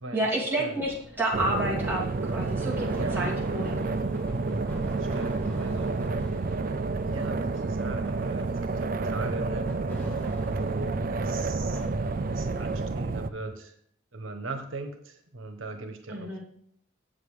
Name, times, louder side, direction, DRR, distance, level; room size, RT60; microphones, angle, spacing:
voice 1, 0.1-3.8 16.1-16.4, right 1 dB, 10° right, -6 dB, 2.7 m, -30 dB
sound 1, 0.8-13.5, equal, 10° left, 1.9 m, -44 dB
sound 2, 1.3-13.3, right 3 dB, 45° right, 0.4 m, -29 dB
voice 2, 2.9-3.3 4.9-6.0 7.1-9.8 10.0-10.1 10.5-11.9 12.3-13.7 14.1-16.4, right 2 dB, 90° right, 7 dB, 1.1 m, -39 dB
8.1 x 7.6 x 4.9 m, 0.65 s
head